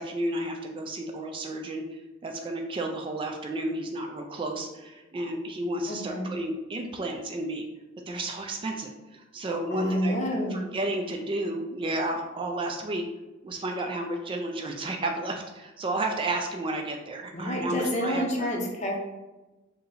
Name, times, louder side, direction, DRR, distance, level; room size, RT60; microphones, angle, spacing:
voice 1, 0.0-1.8 2.2-7.7 8.1-10.2 10.5-13.1 13.4-18.5, right 2 dB, 25° right, 3 dB, 0.3 m, -32 dB
voice 2, 5.9-6.2 9.7-10.6 17.3-19.0, equal, 35° left, 0 dB, 0.7 m, -28 dB
2.7 x 2.7 x 4.0 m, 1.1 s
head